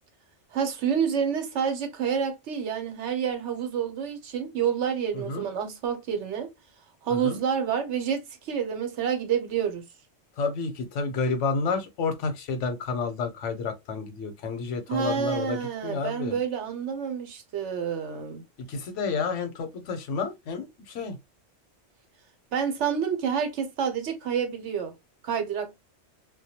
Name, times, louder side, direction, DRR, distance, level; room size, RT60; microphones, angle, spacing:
voice 1, 0.5-6.5 7.0-9.8 14.9-18.4 22.5-24.9 25.2-25.7, right 7 dB, 75° right, 1.0 m, -28 dB
voice 2, 5.1-5.5 7.1-7.4 10.4-16.4 18.7-21.2, left 4 dB, 85° left, 1.0 m, -30 dB
2.2 x 2.2 x 2.7 m
omnidirectional pair, 1.2 m